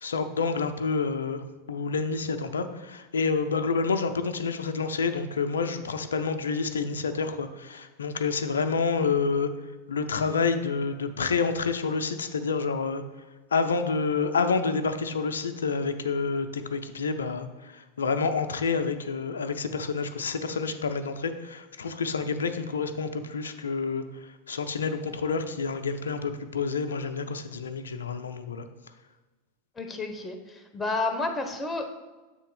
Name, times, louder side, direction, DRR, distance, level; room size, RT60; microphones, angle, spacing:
voice 1, 0.0-1.4 1.7-9.5 9.9-13.0 13.5-17.5 18.0-24.0 24.5-28.7, left 4 dB, 85° left, 9 dB, 0.5 m, -28 dB
voice 2, 29.8-31.9, left 3 dB, 15° left, 6 dB, 0.9 m, -31 dB
7.6 x 3.4 x 4.9 m, 1.2 s
hypercardioid pair, 95°, 0 cm